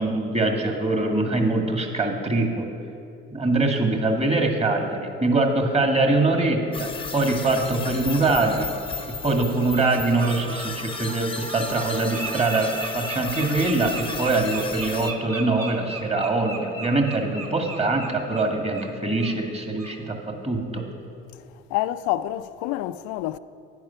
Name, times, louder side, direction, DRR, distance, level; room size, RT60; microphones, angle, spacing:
voice 1, 0.0-2.7 3.3-8.7 9.1-20.8, right 2 dB, 20° right, 1.9 m, -23 dB
sound 1, 6.7-15.1, left 4 dB, 15° left, 0.8 m, -35 dB
Bird, 8.9-9.0 9.5-9.9 10.1-18.9 19.2-19.4 19.8-19.9, right 3 dB, 60° right, 2.4 m, -37 dB
voice 2, 21.7-23.4, left 14 dB, 65° left, 0.4 m, -27 dB
10.5 x 9.3 x 5.8 m
hypercardioid pair, 55°, 30 cm